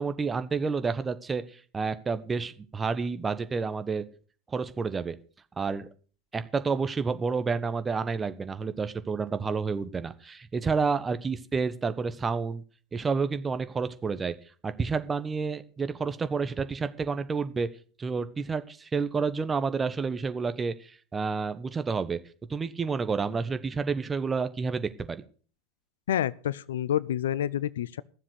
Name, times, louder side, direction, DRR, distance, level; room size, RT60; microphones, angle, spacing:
voice 1, 0.0-4.0 4.5-5.2 5.6-5.9 6.3-12.6 12.9-14.3 14.6-17.7 18.0-22.2 22.5-25.2, right 5 dB, 20° right, 1.1 m, -29 dB
voice 2, 26.1-28.0, left 11 dB, 70° left, 0.5 m, -28 dB
14.0 x 7.4 x 6.5 m
figure-of-eight pair, 85°, 0 cm